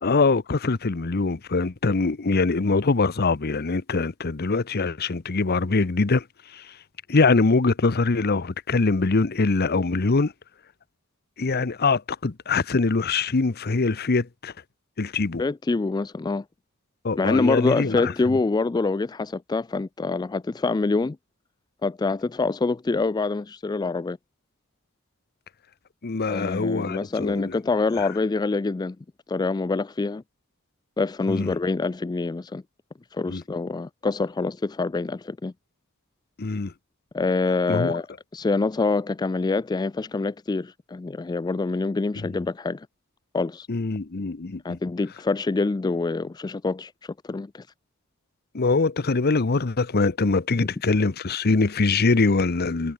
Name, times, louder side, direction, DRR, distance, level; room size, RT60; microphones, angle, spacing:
voice 1, 0.0-6.2 6.5-6.6 7.1-10.3 11.4-14.5 15.0-15.4 17.0-18.1 26.0-27.5 31.3-31.5 33.3-33.4 36.4-36.7 37.7-37.9 42.2-42.3 43.7-44.8 48.5-52.9, left 3 dB, 50° left, 0.8 m, -23 dB
voice 2, 15.4-16.4 17.2-21.2 21.8-24.2 26.3-29.0 29.3-30.2 31.0-32.6 33.1-35.5 37.1-38.1 38.3-42.9 43.3-43.7 44.6-47.7 50.6-50.7, left 3 dB, 20° left, 0.3 m, -25 dB
head